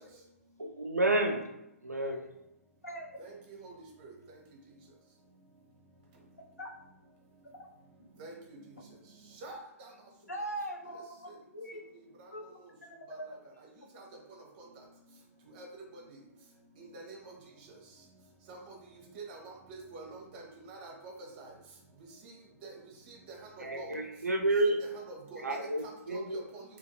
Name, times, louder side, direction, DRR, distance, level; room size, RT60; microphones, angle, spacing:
voice 1, 0.6-1.5 1.8-2.2 23.6-24.8 25.4-26.4, right 2 dB, 85° right, 2 dB, 0.4 m, -30 dB
voice 2, 2.8-3.2 6.6-6.7 7.5-7.6 10.3-11.8 12.3-12.4 12.8-13.3, right 1 dB, 85° left, 1 dB, 0.5 m, -41 dB
voice 3, 8.2-8.6 9.4-9.9 13.9-14.0 15.6-15.7 16.8-17.3 18.5-18.7 19.1-21.5 22.2-22.3 22.6-22.7 23.1-24.0 24.8-26.6, right 3 dB, 35° right, 1 dB, 0.8 m, -46 dB
3.5 x 2.5 x 2.6 m, 0.86 s
figure-of-eight pair, 115°, 8 cm